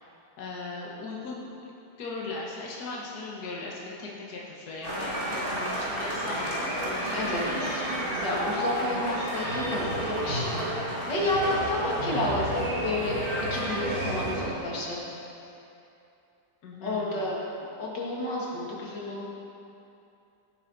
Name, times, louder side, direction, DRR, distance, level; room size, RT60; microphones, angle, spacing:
voice 1, 0.0-1.5 2.0-8.3 16.6-17.4, left 3 dB, 65° left, -4 dB, 1.8 m, -39 dB
sound 1, 4.8-14.5, right 1 dB, 30° right, 2.7 m, -31 dB
voice 2, 7.1-7.8 8.2-13.2 13.5-15.0 16.8-17.4 17.8-19.3, left 1 dB, 85° left, -5 dB, 2.7 m, -31 dB
16.0 x 8.9 x 4.0 m, 2.8 s
omnidirectional pair, 1.9 m